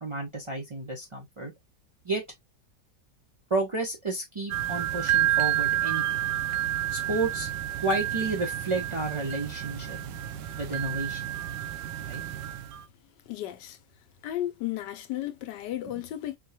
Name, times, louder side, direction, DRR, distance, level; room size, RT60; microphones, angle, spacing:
voice 1, 0.0-1.5 2.0-2.2 3.5-6.2 6.9-7.5 7.8-10.0 10.6-11.2 12.1-12.2, right 3 dB, 35° right, 0.4 m, -31 dB
sound 1, 4.5-12.8, right 12 dB, 80° right, 1.2 m, -30 dB
voice 2, 13.3-13.8 14.2-16.4, left 13 dB, 80° left, 1.2 m, -34 dB
4.4 x 2.2 x 2.7 m
omnidirectional pair, 1.9 m